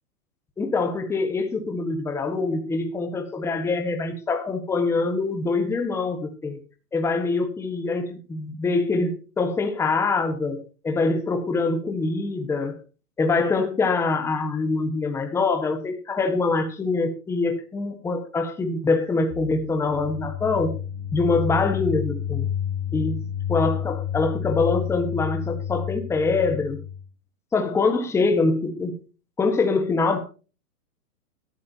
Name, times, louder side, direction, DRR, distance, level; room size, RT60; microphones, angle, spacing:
voice 1, 0.6-6.6 6.9-12.7 13.2-20.7 21.1-22.5 22.9-23.2 23.5-26.8 27.5-29.0 29.4-30.2, left 3 dB, 5° left, 6 dB, 1.3 m, -24 dB
sound 1, 19.3-27.1, left 9 dB, 40° left, 2.8 m, -30 dB
16.5 x 12.5 x 2.8 m, 0.35 s
hypercardioid pair, 155°, 46 cm